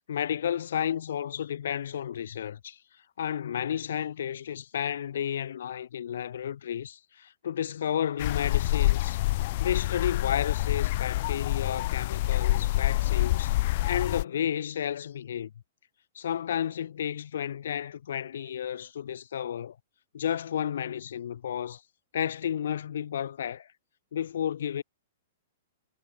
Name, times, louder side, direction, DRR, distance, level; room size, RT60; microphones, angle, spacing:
voice 1, 0.1-2.8 3.2-9.2 9.6-13.6 13.9-15.5 16.1-19.8 20.1-21.8 22.1-23.7 24.1-24.8, left 9 dB, 75° left, 2.0 m, -32 dB
sound 1, 8.2-14.2, left 18 dB, 45° left, 0.8 m, -27 dB
hypercardioid pair, 165°, 0 cm